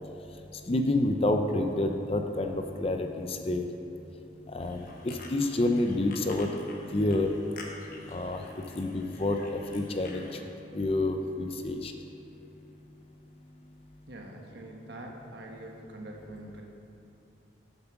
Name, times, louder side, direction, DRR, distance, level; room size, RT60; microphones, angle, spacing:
voice 1, 0.7-3.6 4.5-6.5 6.9-7.3 8.1-8.4 8.8-10.3 10.7-11.9, left 2 dB, 30° left, 5 dB, 0.5 m, -28 dB
sound 1, 4.6-10.4, left 3 dB, 45° left, 1.1 m, -49 dB
voice 2, 14.1-16.6, right 1 dB, 60° right, 1 dB, 1.2 m, -44 dB
8.0 x 7.3 x 5.9 m, 2.8 s
head